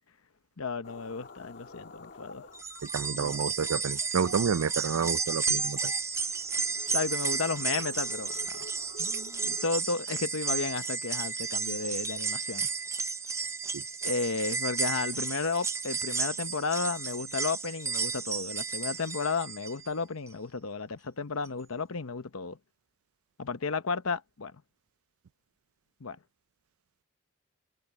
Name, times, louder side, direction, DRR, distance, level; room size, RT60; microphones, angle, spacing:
voice 1, 0.6-2.5 3.1-3.4 6.9-8.7 9.0-12.7 14.0-22.6 23.4-24.5 26.0-26.2, left 4 dB, 70° left, 0.8 m, -33 dB
sound 1, 0.8-9.7, left 3 dB, 50° left, 1.5 m, -48 dB
sound 2, 2.5-19.9 20.3-20.4 21.5-21.6, right 5 dB, 15° right, 0.6 m, -33 dB
voice 2, 2.8-5.9 13.7-13.8, right 6 dB, 75° right, 0.4 m, -30 dB
head